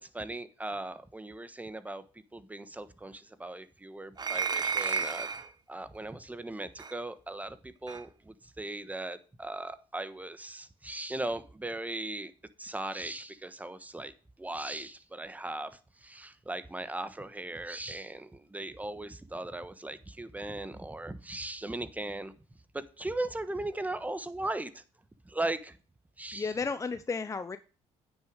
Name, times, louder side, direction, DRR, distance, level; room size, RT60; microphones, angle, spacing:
voice 1, 0.0-2.0 2.3-5.3 5.7-12.3 12.6-14.1 14.4-22.3 22.7-24.8 25.2-25.8 26.2-26.5, right 2 dB, 10° right, 12 dB, 1.2 m, -38 dB
sound 1, 4.2-5.5 6.8-6.9 7.9-8.0, right 5 dB, 30° right, 1.0 m, -32 dB
voice 2, 26.3-27.6, left 4 dB, 20° left, 11 dB, 0.6 m, -33 dB
9.5 x 6.3 x 5.1 m, 0.36 s
supercardioid pair, 75°, 14 cm